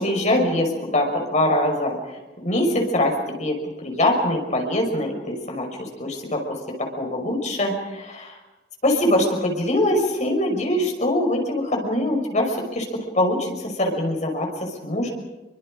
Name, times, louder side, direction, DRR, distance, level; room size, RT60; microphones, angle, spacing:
voice 1, 0.0-1.9 2.4-3.6 3.8-8.4 8.8-15.1, left 1 dB, 40° left, 2 dB, 5.8 m, -23 dB
29.0 x 24.5 x 5.1 m, 1.1 s
head